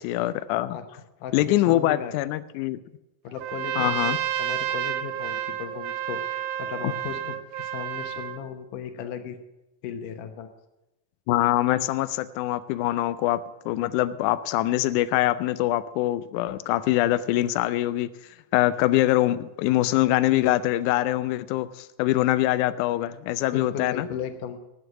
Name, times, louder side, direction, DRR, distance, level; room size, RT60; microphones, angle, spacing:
voice 1, 0.0-0.8 1.3-2.8 3.8-4.2 6.8-6.9 11.3-18.1 18.5-24.1, left 15 dB, 90° left, 14 dB, 1.7 m, -24 dB
voice 2, 0.7-2.1 3.2-9.4 9.8-10.5 23.5-24.6, left 8 dB, 70° left, 8 dB, 2.5 m, -36 dB
Trumpet, 3.4-8.4, right 11 dB, 90° right, 1.7 m, -30 dB
12.5 x 8.0 x 8.4 m, 0.96 s
omnidirectional pair, 4.1 m